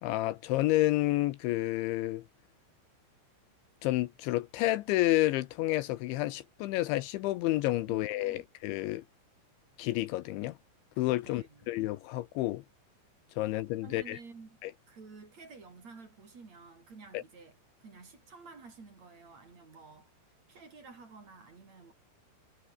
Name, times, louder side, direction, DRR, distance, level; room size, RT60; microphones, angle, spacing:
voice 1, 0.0-2.2 3.8-9.0 9.8-10.6 11.0-12.6 13.4-14.2 14.6-14.7 17.1-17.2, left 17 dB, 80° left, 3.0 m, -30 dB
voice 2, 7.9-8.4 11.2-11.7 13.4-13.6 13.8-17.5 17.8-21.9, right 4 dB, 35° right, 5.4 m, -52 dB
omnidirectional pair, 5.7 m